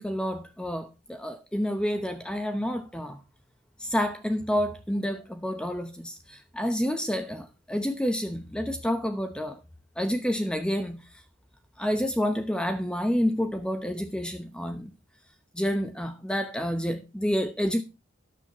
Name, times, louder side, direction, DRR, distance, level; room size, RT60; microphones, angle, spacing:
voice 1, 0.0-3.2 3.8-9.6 10.0-11.2 11.8-14.9 15.5-17.8, equal, 5° left, 0.9 m, -29 dB
13.5 x 9.9 x 3.0 m
head